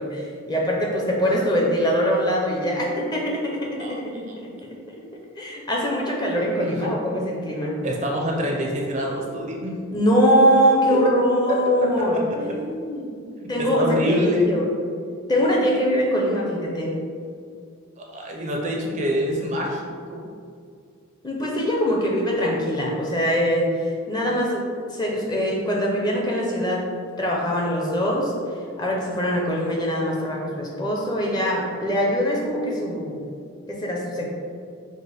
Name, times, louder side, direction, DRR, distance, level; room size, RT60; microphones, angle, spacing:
voice 1, 0.0-4.5 4.9-5.0 5.4-7.7 9.9-13.1 13.5-14.7 15.3-16.9 21.2-26.9 27.2-28.3 28.8-33.2 33.7-34.2, equal, 20° left, -2 dB, 0.5 m, -23 dB
voice 2, 6.3-6.8 7.8-9.7 10.9-11.1 11.8-12.2 13.4-14.5 18.0-19.8 20.1-20.3, equal, 35° right, 0 dB, 0.4 m, -26 dB
4.9 x 2.1 x 4.1 m, 2.2 s
head